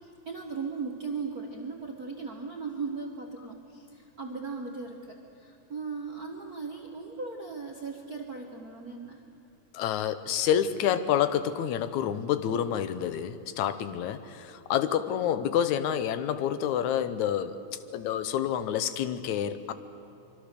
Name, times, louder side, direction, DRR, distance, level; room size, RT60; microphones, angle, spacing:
voice 1, 0.0-9.2, right 4 dB, 45° right, 1 dB, 1.2 m, -38 dB
voice 2, 9.7-17.6 17.9-19.7, left 9 dB, 80° left, 12 dB, 2.2 m, -28 dB
24.5 x 24.5 x 6.8 m, 2.7 s
omnidirectional pair, 3.4 m